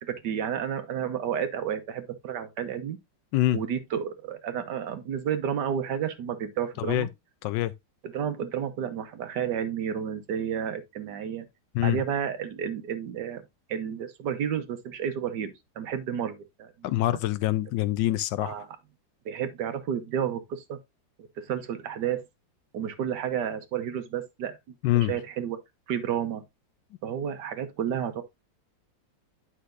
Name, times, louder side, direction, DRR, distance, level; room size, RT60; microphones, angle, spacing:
voice 1, 0.0-3.0 3.5-7.1 8.0-11.5 11.8-13.4 13.7-17.2 18.4-18.7 19.2-20.8 21.4-22.2 22.7-25.6 25.9-26.4 27.0-28.2, right 8 dB, 70° right, 1.5 m, -31 dB
voice 2, 16.8-18.7 24.8-25.1, left 14 dB, 80° left, 1.2 m, -25 dB
9.6 x 5.8 x 2.5 m
omnidirectional pair, 2.0 m